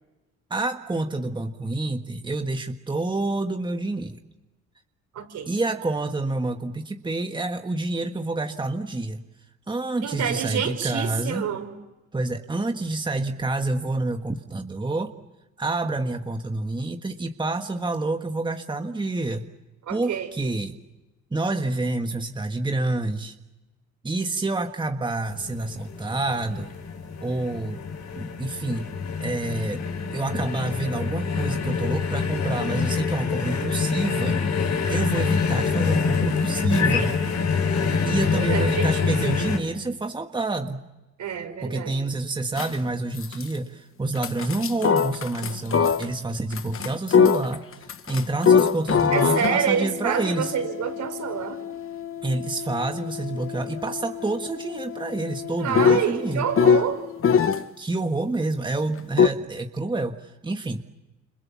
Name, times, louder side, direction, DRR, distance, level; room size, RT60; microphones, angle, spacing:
voice 1, 0.5-4.2 5.5-9.2 9.7-11.4 12.1-15.1 15.6-19.5 19.9-20.8 21.3-23.3 24.0-26.7 27.2-27.8 28.1-28.9 29.2-29.8 30.1-34.4 34.9-37.2 38.0-40.8 41.6-47.6 48.1-50.5 52.2-56.5 57.8-60.8, right 2 dB, 15° right, 5 dB, 1.5 m, -28 dB
voice 2, 5.1-5.5 10.0-11.7 19.9-20.3 38.3-39.2 41.2-42.1 49.1-51.6 55.6-57.0, right 8 dB, 75° right, 4 dB, 5.4 m, -27 dB
sound 1, 25.3-39.6, left 5 dB, 70° left, 4.3 m, -26 dB
sound 2, 42.6-42.9 43.2-43.5 44.2-46.1 46.5-57.6 59.2-59.3, left 7 dB, 45° left, 1.1 m, -23 dB
29.0 x 27.0 x 7.2 m, 1.1 s
cardioid pair, 90°, 30 cm